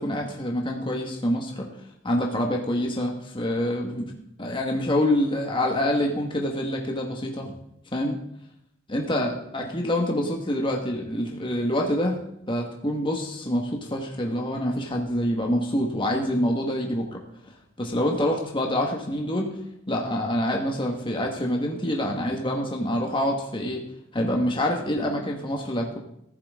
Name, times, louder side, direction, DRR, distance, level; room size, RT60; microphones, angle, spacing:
voice 1, 0.0-1.7 2.0-4.1 4.4-7.5 7.9-8.2 8.9-12.2 12.5-17.2 17.8-19.5 19.9-23.8 24.1-26.0, left 1 dB, 25° left, 1 dB, 1.6 m, -26 dB
15.0 x 11.5 x 3.7 m, 0.76 s
head